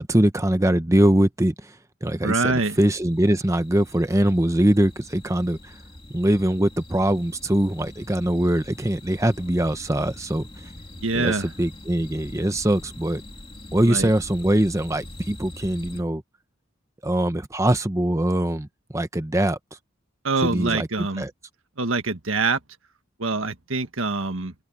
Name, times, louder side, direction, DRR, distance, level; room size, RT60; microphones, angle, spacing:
voice 1, 0.0-5.8 6.1-10.7 11.1-13.2 13.7-16.2 17.0-18.7 18.9-19.6 20.4-20.9 21.2-21.3, right 1 dB, 15° right, 0.8 m, -22 dB
voice 2, 2.2-2.8 11.0-11.5 13.8-14.1 20.2-21.3 21.8-22.6 23.2-24.5, right 3 dB, 75° right, 1.7 m, -25 dB
sound 1, 2.5-16.0, left 1 dB, 25° left, 2.7 m, -43 dB
open air
head